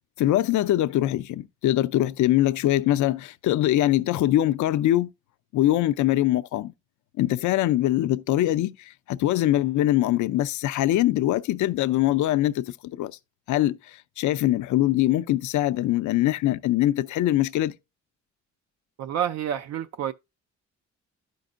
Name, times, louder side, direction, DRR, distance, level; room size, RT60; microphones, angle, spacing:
voice 1, 0.2-5.1 5.5-6.7 7.2-13.1 13.5-17.7, left 14 dB, 75° left, 0.5 m, -23 dB
voice 2, 19.0-20.1, right 10 dB, 60° right, 0.4 m, -28 dB
12.0 x 5.3 x 2.5 m
cardioid pair, 90°, 30 cm